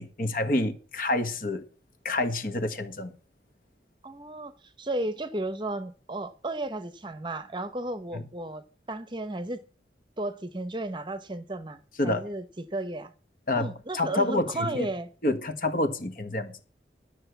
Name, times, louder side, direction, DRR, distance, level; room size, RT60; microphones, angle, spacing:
voice 1, 0.0-1.6 2.0-3.1 8.1-8.2 12.0-12.2 13.5-14.9 15.2-16.5, left 2 dB, 50° left, 1.5 m, -28 dB
voice 2, 4.0-4.5 4.8-9.6 10.2-13.1 13.6-15.1, right 2 dB, 25° right, 0.8 m, -34 dB
12.5 x 6.5 x 8.0 m
head